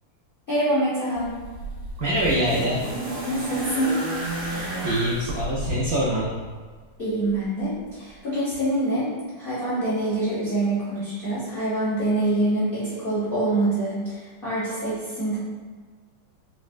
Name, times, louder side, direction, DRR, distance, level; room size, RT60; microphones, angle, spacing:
voice 1, 0.5-1.4 3.2-4.0 7.0-9.1 9.4-15.4, right 1 dB, 65° left, -11 dB, 0.5 m, -25 dB
sound 1, 1.1-6.4 7.4-7.5, right 2 dB, 65° right, 1.3 m, -32 dB
voice 2, 2.0-2.8 4.8-6.3, equal, 80° right, -6 dB, 0.8 m, -24 dB
3.9 x 2.1 x 2.4 m, 1.5 s
omnidirectional pair, 2.2 m